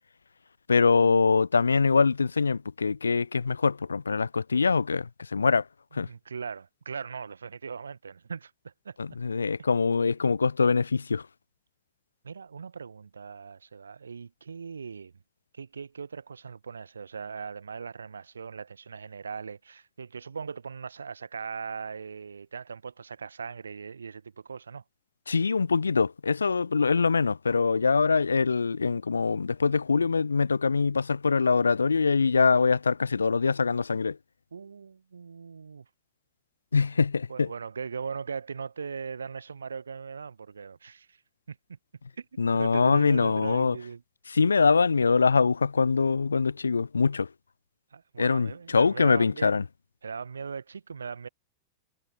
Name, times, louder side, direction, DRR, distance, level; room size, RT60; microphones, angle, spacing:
voice 1, 0.7-5.6 5.9-6.1 9.0-11.3 25.3-34.2 36.7-37.5 42.4-43.8 44.3-47.3 48.2-49.6, left 5 dB, 75° left, 0.4 m, -23 dB
voice 2, 5.9-9.0 12.2-15.1 15.5-24.8 34.5-35.9 37.3-41.2 41.5-41.6 42.2-44.0 47.9-49.6 50.0-51.3, right 5 dB, 75° right, 1.1 m, -39 dB
figure-of-eight pair, 90°, 0 cm